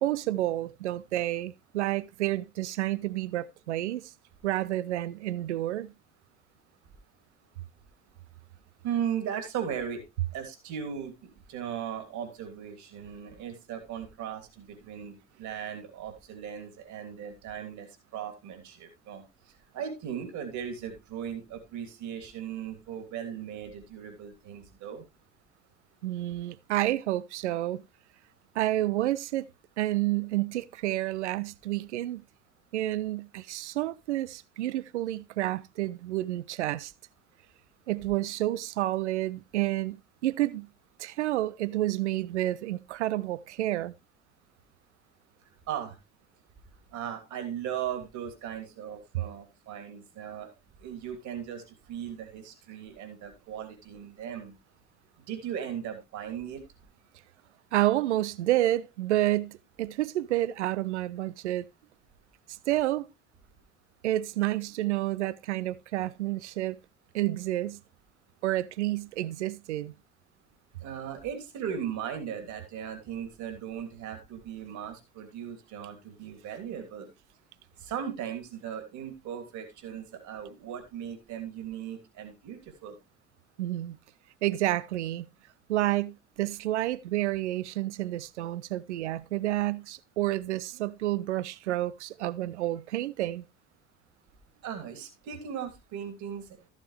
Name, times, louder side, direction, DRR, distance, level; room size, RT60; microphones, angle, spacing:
voice 1, 0.0-4.1 4.4-5.9 26.0-27.8 28.5-29.5 29.8-32.2 32.7-36.9 37.9-40.7 41.0-43.9 57.7-61.6 62.7-63.1 64.0-66.8 67.1-67.8 68.4-69.9 83.6-84.0 84.4-85.3 85.7-93.4, right 15 dB, 75° right, 0.6 m, -29 dB
voice 2, 8.8-10.0 10.3-19.2 19.7-25.0 45.7-46.0 46.9-50.5 50.8-54.5 55.3-56.6 70.8-77.1 77.8-83.0 94.6-96.6, right 8 dB, 55° right, 3.1 m, -37 dB
14.0 x 7.3 x 3.2 m
figure-of-eight pair, 55°, 35 cm